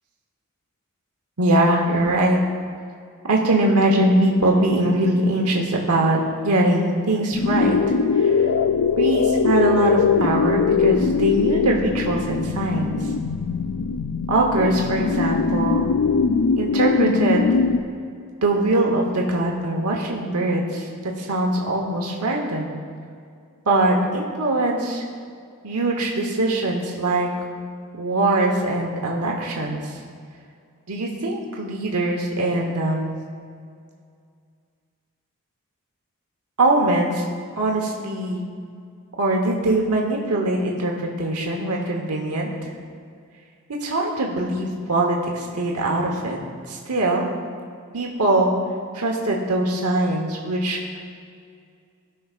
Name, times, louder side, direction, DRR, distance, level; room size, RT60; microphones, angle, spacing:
voice 1, 1.4-2.4 3.3-6.2 6.4-8.5 9.0-13.0 14.3-15.9 16.6-17.6 18.4-22.8 23.7-25.0 25.6-27.3 27.9-30.0 30.9-33.2 36.6-37.3 37.6-38.4 39.2-42.7 43.8-46.4 46.7-47.3 47.9-48.5 48.9-51.0, right 1 dB, 90° right, 0 dB, 1.1 m, -22 dB
sound 1, 7.3-17.8, left 5 dB, 80° left, 0.4 m, -21 dB
16.5 x 5.7 x 2.5 m, 2.3 s
head